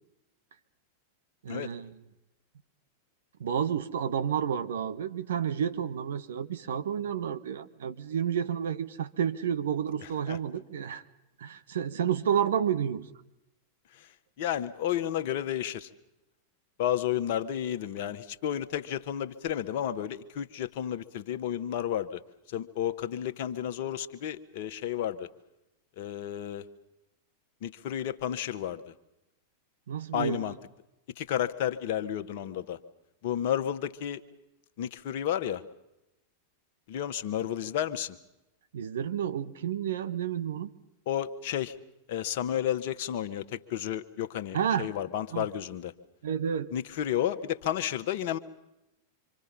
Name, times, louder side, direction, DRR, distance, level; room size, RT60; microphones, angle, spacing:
voice 1, 1.4-2.0 3.4-11.0 11.4-13.1 29.9-30.6 38.7-40.7 44.5-44.9 45.3-45.5 46.2-46.7, right 8 dB, 60° right, 10 dB, 1.5 m, -30 dB
voice 2, 14.4-15.9 16.8-22.2 22.5-25.3 26.0-26.6 27.6-28.8 30.1-30.5 31.2-32.8 33.2-34.2 34.8-35.6 36.9-38.2 41.1-41.7 42.1-45.9 46.7-48.4, left 10 dB, 50° left, 8 dB, 1.4 m, -31 dB
26.5 x 26.0 x 5.6 m, 0.90 s
figure-of-eight pair, 90°, 0 cm